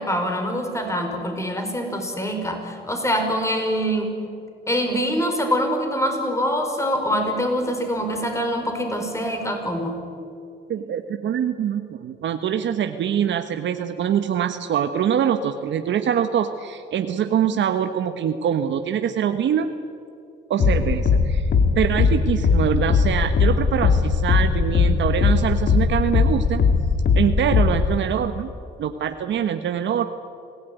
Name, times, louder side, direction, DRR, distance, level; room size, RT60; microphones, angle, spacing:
voice 1, 0.0-4.1 4.7-10.0, equal, 15° left, 4 dB, 5.1 m, -24 dB
voice 2, 10.7-19.7 20.5-21.5 21.7-26.6 27.1-28.5 28.8-30.1, right 9 dB, 70° right, 7 dB, 1.2 m, -24 dB
sound 1, 20.6-28.0, left 5 dB, 65° left, 2.6 m, -19 dB
26.0 x 17.5 x 9.3 m, 2.5 s
cardioid pair, 90°, 20 cm